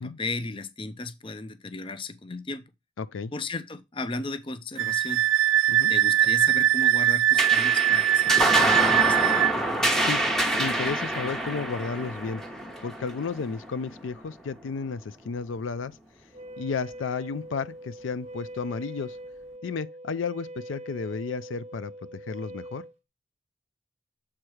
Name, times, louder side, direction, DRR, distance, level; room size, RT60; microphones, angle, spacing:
voice 1, 0.0-2.6 3.3-5.2 5.9-9.5, left 3 dB, 25° left, 0.5 m, -35 dB
voice 2, 3.0-3.3 5.7-5.9 10.0-10.2 10.5-12.4 12.8-16.0 16.6-19.2 19.6-22.8, left 5 dB, 80° left, 0.4 m, -33 dB
Wind instrument woodwind instrument, 4.8-9.5, right 12 dB, 85° right, 0.4 m, -21 dB
sound 1, 7.4-14.2, right 1 dB, ahead, 1.0 m, -26 dB
Wind instrument woodwind instrument 2, 16.3-22.9, right 1 dB, 35° right, 0.9 m, -42 dB
7.4 x 4.6 x 4.8 m
head